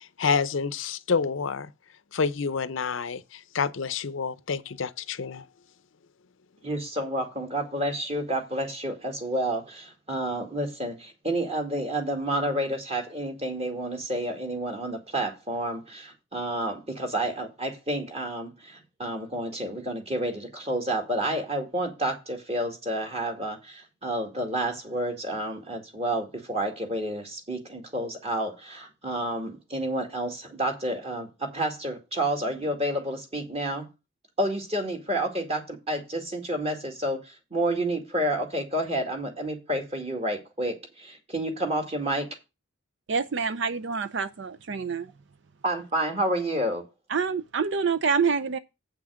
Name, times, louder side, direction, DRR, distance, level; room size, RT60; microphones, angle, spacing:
voice 1, 0.2-1.7 2.1-5.4, left 5 dB, 70° left, 0.6 m, -28 dB
voice 2, 6.6-33.9 34.4-42.3 45.6-46.8, right 1 dB, 30° right, 2.2 m, -30 dB
voice 3, 43.1-45.1 47.1-48.6, right 5 dB, 55° right, 0.5 m, -27 dB
8.2 x 6.0 x 6.3 m
head